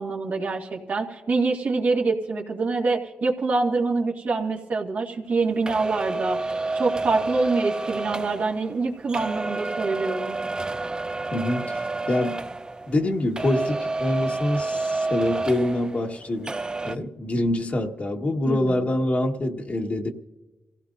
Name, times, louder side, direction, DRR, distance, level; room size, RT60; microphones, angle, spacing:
voice 1, 0.0-10.4 18.5-18.9, right 3 dB, 65° right, -1 dB, 2.1 m, -25 dB
sound 1, 5.7-13.1 13.4-16.2 16.4-16.9, right 3 dB, 25° right, 0.5 m, -29 dB
voice 2, 11.3-12.4 12.9-16.6 16.8-20.1, left 1 dB, 45° left, 3 dB, 1.6 m, -25 dB
26.5 x 16.5 x 2.6 m, 1.1 s
cardioid pair, 55°, 3 cm